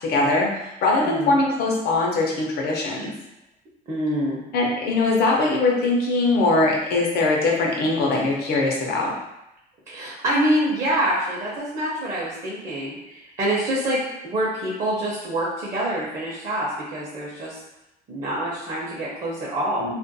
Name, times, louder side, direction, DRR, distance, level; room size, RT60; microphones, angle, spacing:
voice 1, 0.0-3.1 4.5-9.1 19.8-20.0, left 2 dB, 70° left, -2 dB, 0.7 m, -21 dB
voice 2, 1.0-1.4 3.9-4.4 9.9-14.0 14.2-17.6 18.1-19.9, right 1 dB, 45° right, -6 dB, 0.7 m, -26 dB
2.5 x 2.2 x 2.6 m, 0.88 s
cardioid pair, 110°, 17 cm